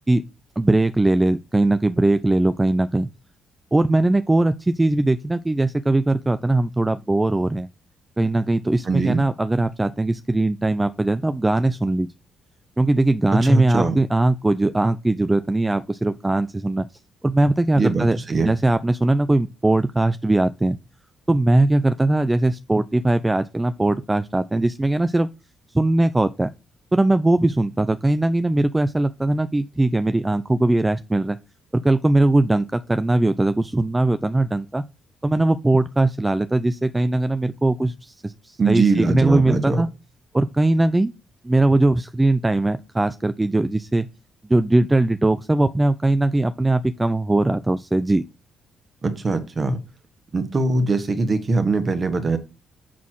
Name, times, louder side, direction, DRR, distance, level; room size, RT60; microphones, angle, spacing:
voice 1, 0.6-3.1 3.7-7.7 8.2-12.1 12.8-16.9 17.2-18.2 18.4-20.8 21.3-25.3 25.7-26.5 26.9-31.4 31.7-34.8 35.2-39.9 40.3-41.1 41.4-44.1 44.5-48.2, right 2 dB, 15° right, 0.4 m, -20 dB
voice 2, 8.9-9.2 13.3-14.0 17.7-18.5 38.6-39.9 49.0-49.8 50.3-52.4, right 3 dB, 35° right, 1.4 m, -21 dB
7.3 x 4.2 x 4.6 m
cardioid pair, 90°, 0 cm